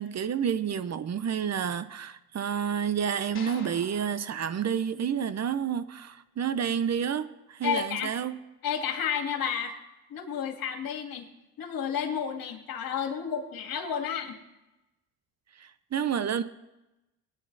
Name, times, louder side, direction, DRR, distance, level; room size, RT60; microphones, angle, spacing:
voice 1, 0.0-8.4 15.6-16.4, right 8 dB, 40° right, 13 dB, 0.9 m, -30 dB
sound 1, 3.3-5.7, left 5 dB, 30° left, 2.4 m, -48 dB
voice 2, 7.6-8.1 8.6-9.7 10.1-11.3 11.6-14.4, left 8 dB, 60° left, 4 dB, 2.4 m, -31 dB
18.5 x 10.0 x 4.1 m, 0.97 s
supercardioid pair, 70°, 39 cm